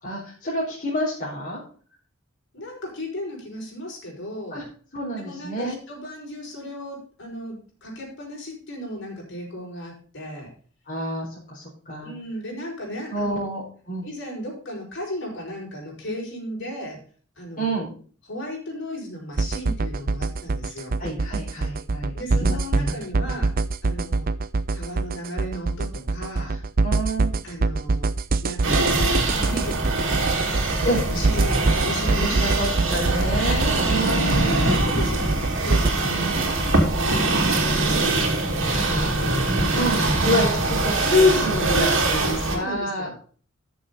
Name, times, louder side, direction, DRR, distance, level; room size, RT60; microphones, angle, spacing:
voice 1, 0.0-1.6 4.5-4.6 4.9-5.8 10.9-12.1 13.1-14.0 17.6-17.9 21.0-23.3 26.8-27.4 30.8-31.0 32.2-34.6 36.0-36.5 39.7-43.2, left 1 dB, 40° left, -7 dB, 4.4 m, -27 dB
voice 2, 2.5-4.7 5.2-10.5 12.0-13.5 14.0-17.0 17.4-17.8 18.3-21.0 22.1-23.5 23.8-24.3 24.7-26.5 27.4-28.1 28.4-30.6 30.8-32.4 33.7-33.9 34.4-36.6 36.9-40.0 42.5-43.2, equal, 60° left, -2 dB, 5.8 m, -35 dB
sound 1, 19.4-35.9, right 3 dB, 45° right, 0.5 m, -24 dB
sound 2, 28.6-42.6, right 2 dB, 65° right, 2.9 m, -23 dB
13.0 x 7.3 x 4.1 m, 0.43 s
head